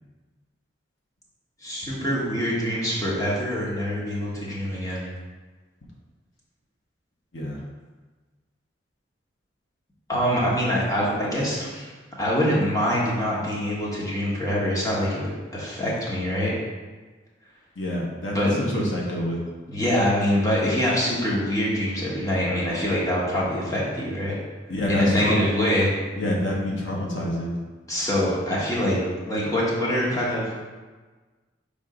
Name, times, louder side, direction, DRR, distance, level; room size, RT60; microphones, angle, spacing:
voice 1, 1.6-5.1 10.1-11.9 12.2-16.5 18.3-18.5 19.7-24.4 24.9-25.9 27.9-29.0 29.3-30.5, equal, 20° left, -6 dB, 1.4 m, -24 dB
voice 2, 17.8-19.4 24.7-25.4 26.2-27.6, left 1 dB, 80° left, -3 dB, 1.2 m, -27 dB
5.6 x 3.6 x 5.0 m, 1.3 s
head